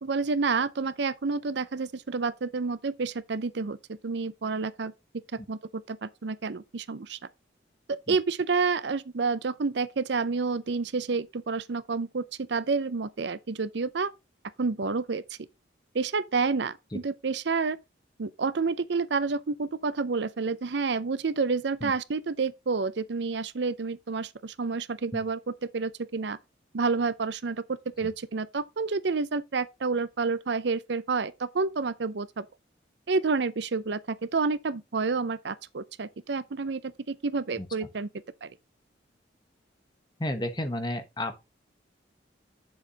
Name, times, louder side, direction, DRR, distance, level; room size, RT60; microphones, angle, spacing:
voice 1, 0.0-4.9 5.5-7.2 7.9-14.1 14.6-15.2 15.9-17.8 18.2-26.4 26.7-32.5 33.1-38.1 38.4-38.5, right 4 dB, 65° right, 0.6 m, -29 dB
voice 2, 40.2-41.4, left 1 dB, 25° left, 1.2 m, -31 dB
8.1 x 7.1 x 2.9 m
head